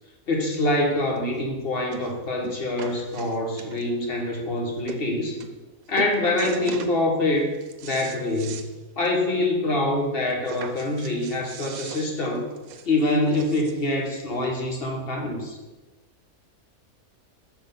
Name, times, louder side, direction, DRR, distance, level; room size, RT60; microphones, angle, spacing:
voice 1, 0.3-5.4 5.9-12.5 12.9-15.6, left 2 dB, 45° left, 1 dB, 1.2 m, -25 dB
sound 1, 1.2-1.3 1.9-2.2 2.4-4.0 4.6-4.7 4.9-5.0 5.4-5.7 6.0-7.0 7.4-8.7 9.1-9.2 9.5-9.6 10.5-13.9 14.7-14.8, right 7 dB, 80° right, 1.1 m, -39 dB
6.2 x 4.9 x 5.2 m, 1.2 s
omnidirectional pair, 1.5 m